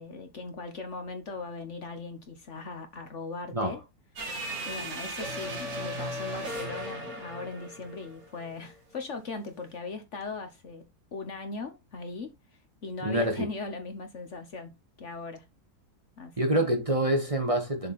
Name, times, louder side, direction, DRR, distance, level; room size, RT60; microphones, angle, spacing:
voice 1, 0.0-3.8 4.6-10.8 11.1-12.3 12.8-14.7 15.0-15.4 16.2-16.7, left 3 dB, 50° left, 1.2 m, -39 dB
sound 1, 4.2-8.5, right 1 dB, 45° right, 1.6 m, -36 dB
voice 2, 13.0-13.5 16.4-17.9, right 1 dB, 20° right, 1.3 m, -26 dB
7.1 x 4.7 x 4.1 m
omnidirectional pair, 1.7 m